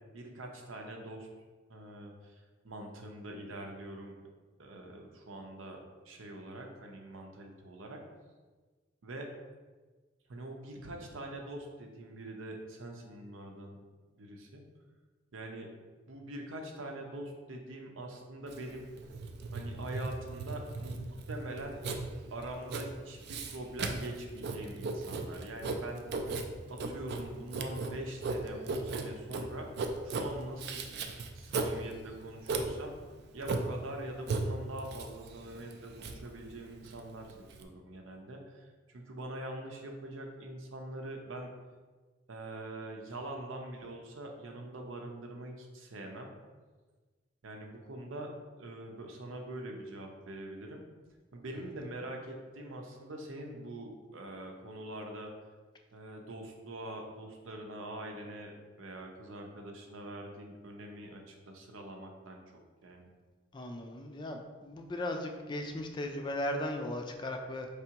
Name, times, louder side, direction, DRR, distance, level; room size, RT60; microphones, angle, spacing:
voice 1, 0.1-1.3 1.7-4.2 4.6-5.8 6.0-8.0 9.0-9.3 10.3-13.8 14.2-14.6 15.3-15.7 16.1-18.8 19.5-21.8 22.3-26.3 26.7-29.7 30.0-30.9 31.3-32.9 33.3-41.5 42.3-46.3 47.4-48.3 48.6-50.8 51.3-55.3 55.9-62.4 62.8-63.1, right 1 dB, 90° right, 2 dB, 0.7 m, -44 dB
Writing, 18.5-37.6, right 3 dB, 55° right, 0.4 m, -37 dB
voice 2, 63.5-67.7, left 1 dB, 25° left, 4 dB, 0.3 m, -37 dB
4.7 x 3.4 x 2.9 m, 1.3 s
head